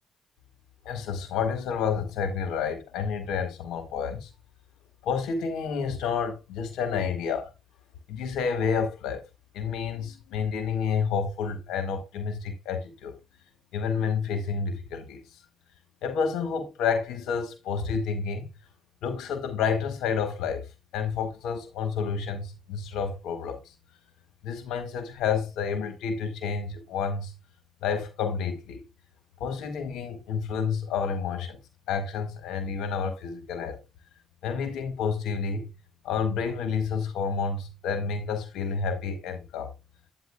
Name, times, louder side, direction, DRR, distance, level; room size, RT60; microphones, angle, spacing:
voice 1, 0.8-4.3 5.0-7.5 8.1-9.2 9.5-13.1 13.7-15.2 16.0-18.4 19.0-23.7 24.4-27.3 27.8-28.8 29.4-31.6 31.9-33.8 34.4-35.7 36.0-39.7, left 6 dB, 90° left, 1.6 m, -29 dB
10.5 x 9.2 x 2.2 m
cardioid pair, 90°, 0 cm